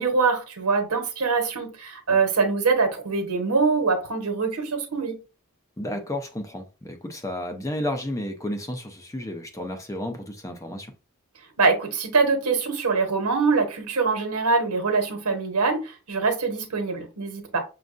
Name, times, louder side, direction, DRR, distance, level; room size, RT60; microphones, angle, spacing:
voice 1, 0.0-5.2 11.6-17.6, right 4 dB, 80° right, 1.1 m, -24 dB
voice 2, 5.8-10.9, left 1 dB, 15° left, 0.5 m, -32 dB
6.2 x 2.3 x 2.5 m
head